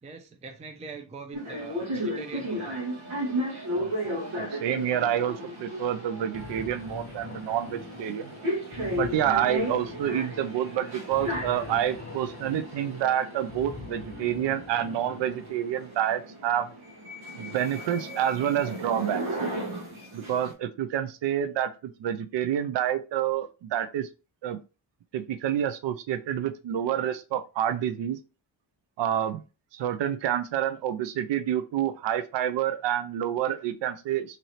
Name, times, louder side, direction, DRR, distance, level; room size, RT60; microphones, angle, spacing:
voice 1, 0.0-2.8, right 4 dB, 15° right, 0.5 m, -43 dB
sound 1, 1.3-20.5, equal, 85° right, 1.2 m, -35 dB
voice 2, 3.8-8.3 9.0-16.7 17.4-19.2 20.1-24.1 24.4-24.6 25.1-28.2 29.0-29.4 29.7-34.4, right 10 dB, 65° right, 0.5 m, -28 dB
sound 2, 6.3-15.9, left 4 dB, 30° left, 0.7 m, -44 dB
2.8 x 2.6 x 3.0 m
cardioid pair, 65°, 47 cm